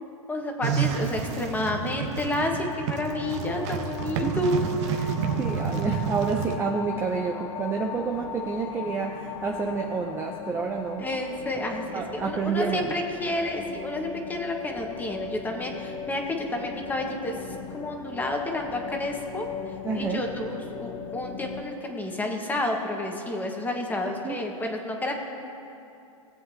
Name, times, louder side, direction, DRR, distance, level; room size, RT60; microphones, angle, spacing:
voice 1, 0.3-4.6 4.8-5.0 7.3-7.5 11.0-19.5 19.9-25.1, left 1 dB, 10° left, 2 dB, 1.4 m, -30 dB
sound 1, 0.6-6.6, right 7 dB, 55° right, 1.1 m, -30 dB
sound 2, 3.1-21.6, left 8 dB, 25° left, 0.8 m, -38 dB
voice 2, 5.0-11.1 11.9-13.0 19.8-20.2 24.2-24.4, right 5 dB, 15° right, 1 dB, 0.6 m, -29 dB
20.5 x 7.7 x 2.8 m, 2.7 s
hypercardioid pair, 130°, 18 cm